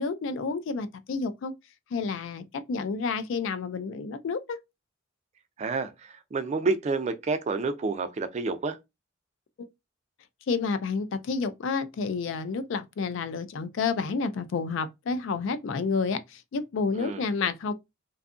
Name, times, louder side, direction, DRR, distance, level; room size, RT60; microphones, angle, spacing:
voice 1, 0.0-1.5 1.9-4.6 9.6-9.7 10.5-17.7, left 4 dB, 65° left, 0.3 m, -30 dB
voice 2, 5.6-8.8 17.0-17.2, right 4 dB, 35° right, 0.3 m, -29 dB
2.6 x 2.3 x 2.4 m
head